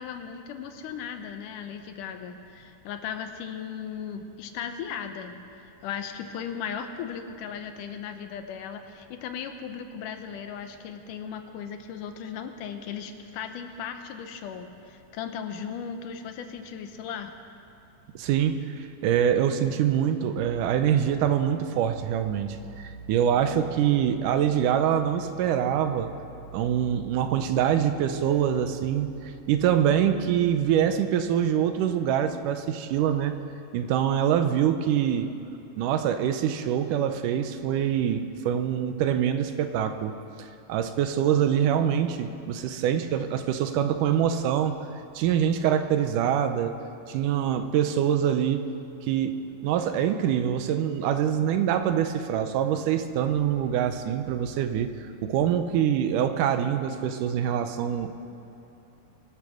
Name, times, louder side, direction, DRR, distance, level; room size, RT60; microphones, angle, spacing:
voice 1, 0.0-17.3, left 7 dB, 80° left, 7 dB, 2.4 m, -37 dB
voice 2, 18.2-26.1 26.5-33.4 33.7-35.3 35.8-44.8 45.2-46.8 47.1-48.7 49.0-54.9 55.2-58.2, right 9 dB, 80° right, 9 dB, 2.2 m, -25 dB
24.0 x 8.4 x 6.5 m, 2.8 s
omnidirectional pair, 3.8 m